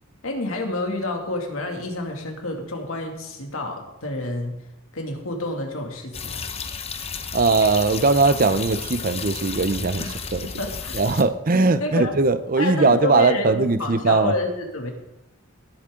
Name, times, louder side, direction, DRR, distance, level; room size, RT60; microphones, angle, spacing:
voice 1, 0.2-4.6 4.9-6.4 10.0-10.1 10.4-11.0 11.8-12.1 12.6-13.5 13.8-14.9, left 2 dB, 85° left, 2 dB, 2.3 m, -28 dB
sound 1, 6.1-11.2, left 5 dB, 30° left, 0.8 m, -33 dB
voice 2, 7.3-10.5 10.9-14.3, right 3 dB, 45° right, 12 dB, 0.6 m, -20 dB
18.0 x 8.4 x 3.8 m, 0.92 s
head